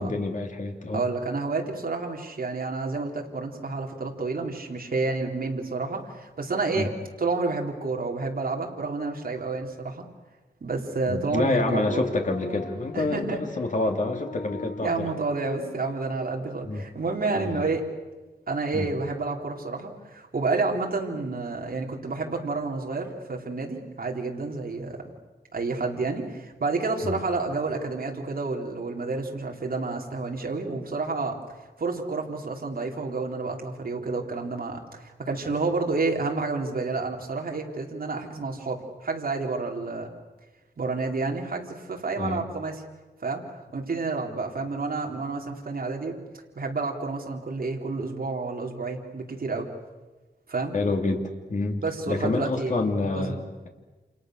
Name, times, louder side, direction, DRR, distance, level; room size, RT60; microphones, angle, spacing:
voice 1, 0.0-1.0 6.8-6.9 11.1-15.1 16.6-16.9 17.3-17.6 18.7-18.9 27.0-27.2 42.2-42.4 50.7-53.7, left 2 dB, 45° left, 3 dB, 3.0 m, -28 dB
voice 2, 0.9-6.9 7.2-10.0 10.6-12.0 12.9-13.4 14.8-17.8 18.5-25.0 25.5-31.4 31.8-40.1 40.8-42.8 43.2-43.4 43.7-46.1 46.6-49.7 50.5-50.7 51.8-53.3, right 3 dB, 55° right, 0 dB, 3.8 m, -29 dB
sound 1, 11.5-15.9, left 3 dB, 65° left, 3.1 m, -41 dB
29.5 x 28.0 x 6.6 m, 1.2 s
wide cardioid pair, 130°, 18 cm